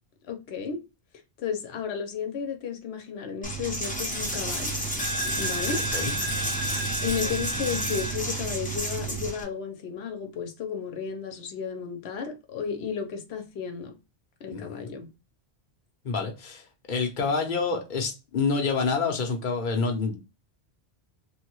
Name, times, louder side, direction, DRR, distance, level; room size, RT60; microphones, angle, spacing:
voice 1, 0.3-0.8 1.4-4.8 5.4-5.8 7.0-13.9 14.4-15.1, left 6 dB, 85° left, 1.0 m, -33 dB
Coin (dropping), 3.4-9.4, right 1 dB, 10° left, 0.6 m, -29 dB
voice 2, 14.5-14.9 16.0-20.2, left 4 dB, 55° left, 0.8 m, -28 dB
3.2 x 2.2 x 2.9 m
omnidirectional pair, 1.1 m